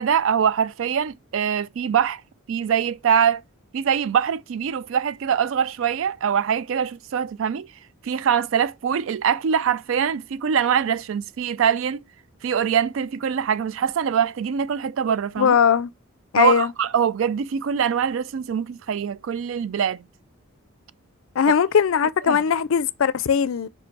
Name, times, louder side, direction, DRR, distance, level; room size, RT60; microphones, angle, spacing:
voice 1, 0.0-2.2 2.5-3.4 3.7-7.7 8.0-12.0 12.4-15.5 16.4-20.0 22.3-22.4, right 8 dB, 65° right, 0.3 m, -23 dB
voice 2, 15.4-15.9 16.3-16.7 21.4-23.7, left 7 dB, 70° left, 0.4 m, -19 dB
5.1 x 4.8 x 4.5 m
head